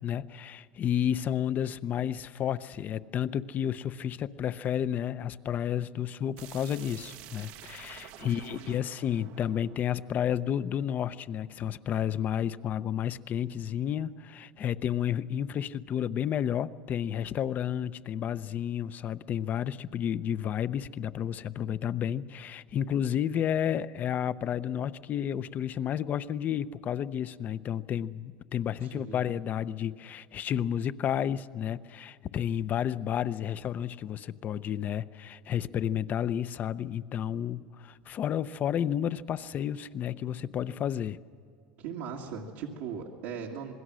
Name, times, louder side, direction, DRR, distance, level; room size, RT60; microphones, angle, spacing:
voice 1, 0.0-41.2, left 9 dB, 40° left, 15 dB, 0.6 m, -31 dB
sound 1, 6.4-11.1, right 12 dB, 65° right, 1.0 m, -49 dB
voice 2, 8.2-8.8 28.8-29.3 41.8-43.7, right 6 dB, 80° right, -3 dB, 2.1 m, -39 dB
26.5 x 20.5 x 6.3 m, 2.2 s
supercardioid pair, 120°, 5 cm